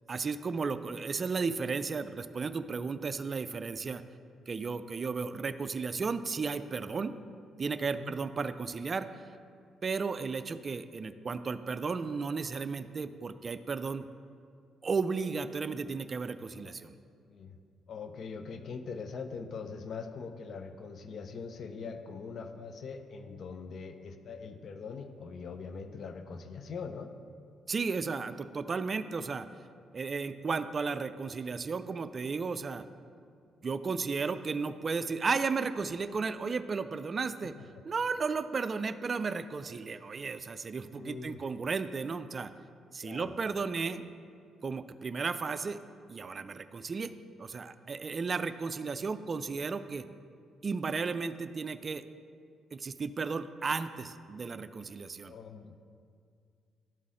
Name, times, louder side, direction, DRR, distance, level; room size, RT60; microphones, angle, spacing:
voice 1, 0.1-4.0 4.5-7.1 7.6-9.1 9.8-14.1 14.8-16.9 27.7-29.5 29.9-32.9 33.6-37.5 37.8-42.5 42.9-44.0 44.6-45.8 46.1-47.1 47.4-50.1 50.6-52.0 52.7-55.3, right 4 dB, 40° right, 11 dB, 0.3 m, -34 dB
voice 2, 17.2-17.6 17.9-27.1 40.9-41.4 43.0-43.3 55.2-55.7, left 5 dB, 60° left, 8 dB, 0.5 m, -42 dB
12.0 x 4.0 x 3.7 m, 2.3 s
cardioid pair, 90°, 0 cm